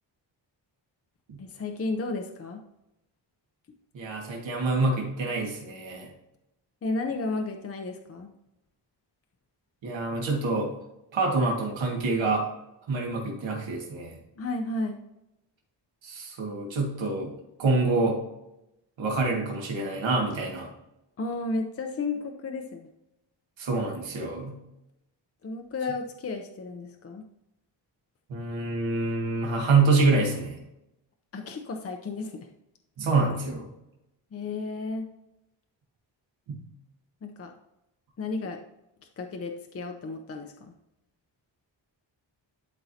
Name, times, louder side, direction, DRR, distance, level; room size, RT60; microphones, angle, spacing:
voice 1, 1.4-2.6 6.8-8.3 14.4-15.0 21.2-22.9 25.4-27.2 31.3-32.5 34.3-35.1 37.2-37.5 38.2-38.6 39.2-40.7, left 3 dB, 35° left, 4 dB, 0.6 m, -33 dB
voice 2, 3.9-6.1 9.8-10.7 11.1-12.5 12.9-14.2 16.0-17.3 17.6-18.2 19.0-20.7 23.6-24.6 28.3-30.6 33.0-33.7 36.5-36.6, right 3 dB, 85° right, 0 dB, 1.9 m, -26 dB
11.5 x 4.6 x 2.8 m, 0.87 s
wide cardioid pair, 165°, 44 cm